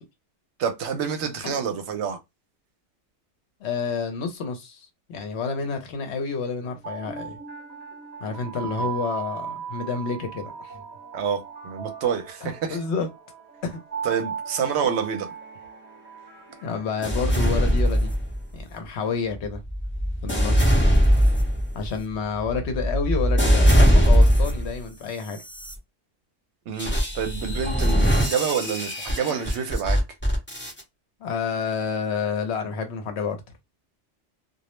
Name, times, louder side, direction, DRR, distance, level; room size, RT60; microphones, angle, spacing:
voice 1, 0.6-2.2 8.8-8.9 11.1-12.8 14.0-15.3 26.7-30.0, right 7 dB, 75° right, 0.9 m, -28 dB
voice 2, 3.6-7.4 8.2-10.8 12.4-13.1 13.6-13.8 16.6-18.1 18.5-19.6 20.2-20.9 21.7-25.4 31.2-33.4, left 5 dB, 70° left, 0.9 m, -29 dB
sound 1, 6.6-17.7, right 7 dB, 35° right, 1.1 m, -37 dB
sound 2, 17.0-18.6 19.3-24.8 25.4-25.7 26.8-30.8, equal, 10° left, 0.7 m, -21 dB
2.3 x 2.0 x 3.0 m
omnidirectional pair, 1.2 m